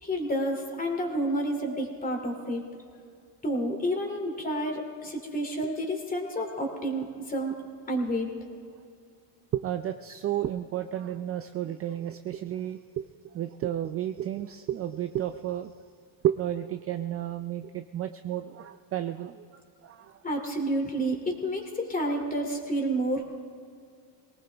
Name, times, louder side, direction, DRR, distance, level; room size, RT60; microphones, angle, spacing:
voice 1, 0.0-2.6 3.4-7.6 7.9-8.3 20.2-23.2, right 1 dB, 20° left, 2 dB, 2.7 m, -30 dB
voice 2, 9.5-15.7 16.2-19.5 19.8-20.2, right 11 dB, 35° right, 9 dB, 0.4 m, -32 dB
22.5 x 18.5 x 3.4 m, 2.3 s
cardioid pair, 130°, 45 cm